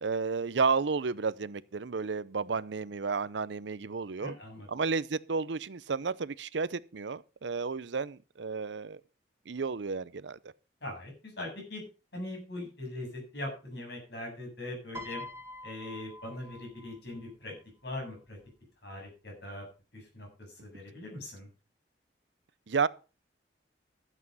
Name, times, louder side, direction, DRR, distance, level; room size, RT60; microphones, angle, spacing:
voice 1, 0.0-4.3 4.7-9.0 9.5-10.4 22.7-22.9, right 4 dB, 75° right, 0.6 m, -32 dB
voice 2, 4.2-4.7 10.8-11.8 12.1-15.2 15.6-17.5 17.8-18.4 18.8-19.7 19.9-21.5, left 1 dB, 65° left, 7.7 m, -41 dB
Piano, 14.9-17.3 18.3-18.6, left 1 dB, 15° right, 1.7 m, -46 dB
12.5 x 8.3 x 5.4 m
head